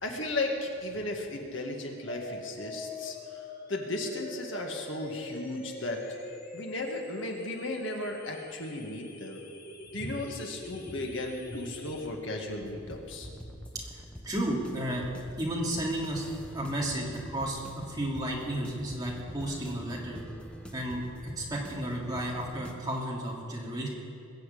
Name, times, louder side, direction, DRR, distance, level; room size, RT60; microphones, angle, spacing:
voice 1, 0.0-3.4 3.7-6.0 6.5-9.5 9.9-13.3, left 2 dB, 65° left, 1 dB, 1.9 m, -35 dB
sound 1, 2.1-12.1, left 2 dB, 45° left, 1.5 m, -44 dB
sound 2, 12.4-22.7, equal, 5° left, 1.1 m, -46 dB
voice 2, 13.7-15.0 15.4-16.3 16.5-20.2 20.7-21.0 21.4-23.9, right 1 dB, 20° right, -4 dB, 2.8 m, -33 dB
21.0 x 7.1 x 8.5 m, 2.6 s
head